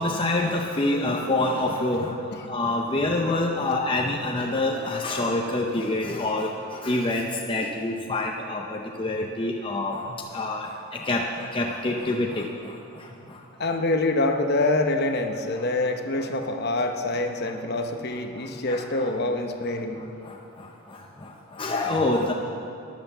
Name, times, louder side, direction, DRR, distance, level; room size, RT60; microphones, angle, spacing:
voice 1, 0.0-13.7 15.5-15.6 16.2-16.3 17.5-17.6 18.4-19.1 20.2-22.3, left 2 dB, 25° left, 1 dB, 0.7 m, -27 dB
voice 2, 13.6-20.0, left 2 dB, 45° left, 5 dB, 0.9 m, -25 dB
13.0 x 10.5 x 6.8 m, 2.7 s
head